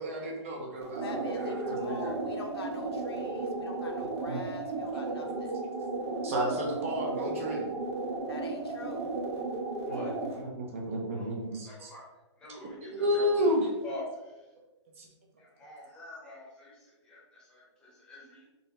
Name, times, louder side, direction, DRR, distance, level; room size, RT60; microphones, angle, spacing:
voice 1, 0.0-2.2 4.3-4.4 6.2-7.7 9.9-10.0 10.4-11.9 12.9-13.7 15.0-15.1, equal, 25° right, 0 dB, 0.5 m, -31 dB
sound 1, 0.8-10.4, right 3 dB, 65° right, 1.3 m, -34 dB
voice 2, 1.0-5.5 8.3-9.0, left 3 dB, 55° left, 3 dB, 0.7 m, -44 dB
voice 3, 9.8-10.4 11.1-11.4 11.6-14.5 15.4-18.5, left 1 dB, 5° left, -6 dB, 0.8 m, -46 dB
4.0 x 2.7 x 4.0 m, 1.1 s
hypercardioid pair, 170°, 15 cm